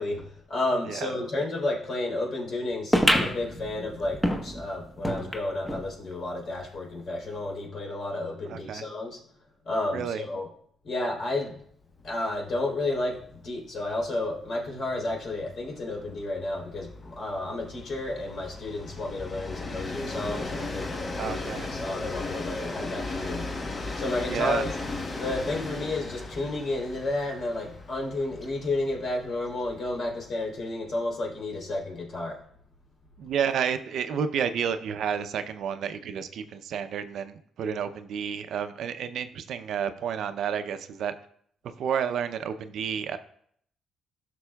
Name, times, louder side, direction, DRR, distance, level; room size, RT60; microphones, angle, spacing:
voice 1, 0.0-9.2 9.7-10.5 10.8-11.6 12.0-21.4 21.7-24.7 25.2-32.4, left 2 dB, 60° left, -2 dB, 3.4 m, -31 dB
voice 2, 0.8-1.3 8.5-8.9 9.9-10.2 21.2-21.7 24.3-24.7 33.2-41.1 41.6-43.2, right 7 dB, 70° right, 10 dB, 0.6 m, -30 dB
sound 1, 2.9-5.9 6.3-6.4 6.6-6.7 7.5-7.6, equal, 5° left, 1.0 m, -27 dB
Train, 12.0-12.2 12.5-12.6 12.9-30.3, left 2 dB, 35° left, 1.1 m, -37 dB
14.0 x 6.0 x 2.3 m, 0.65 s
cardioid pair, 90°, 0 cm